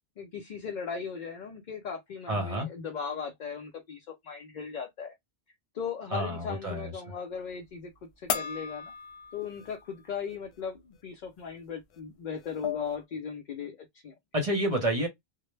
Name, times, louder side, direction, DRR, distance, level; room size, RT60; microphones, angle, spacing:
voice 1, 0.2-5.1 5.7-7.9 8.2-8.9 9.3-14.1, left 6 dB, 55° left, 0.6 m, -38 dB
voice 2, 2.3-2.7 6.1-6.9 14.3-15.1, right 1 dB, 40° right, 0.7 m, -29 dB
sound 1, 8.3-9.9 10.3-10.4 11.9-12.0 12.4-13.0, left 7 dB, 85° left, 0.9 m, -35 dB
2.1 x 2.0 x 3.1 m
omnidirectional pair, 1.1 m